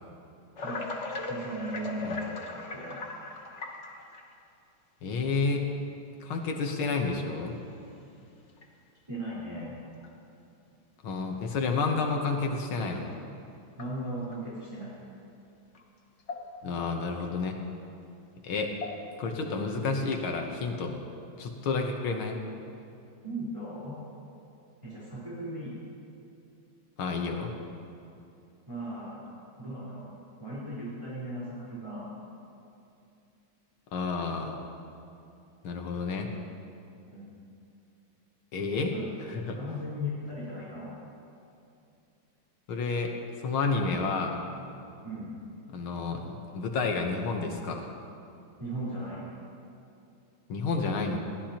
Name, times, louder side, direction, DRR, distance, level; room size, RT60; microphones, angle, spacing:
sound 1, 0.6-4.4 5.2-5.3 6.3-6.4 7.2-7.5 7.9-8.0 8.5-8.6 10.0-10.1 12.9-13.0 13.7-14.4 15.7-15.8 16.2-16.8 17.2-17.3 18.6-19.3 20.0-20.4, left 2 dB, 45° left, 1.1 m, -39 dB
voice 1, 0.6-0.9 1.3-3.0 9.1-9.8 13.8-14.9 23.2-24.0 24.8-25.8 28.7-29.2 29.6-30.0 30.4-32.1 37.0-37.3 38.9-39.1 39.5-40.9 45.0-45.3 48.6-49.2, equal, 15° right, -10 dB, 4.2 m, -37 dB
voice 2, 5.0-5.7 6.2-7.5 11.0-13.1 16.6-17.6 18.4-18.7 19.2-21.0 21.4-22.4 27.0-27.5 33.9-34.6 35.6-36.3 38.5-38.9 39.3-39.6 42.7-43.1 43.4-44.4 45.7-47.9 50.5-51.2, left 4 dB, 80° left, 2 dB, 2.0 m, -30 dB
21.5 x 15.5 x 3.0 m, 2.6 s
omnidirectional pair, 2.3 m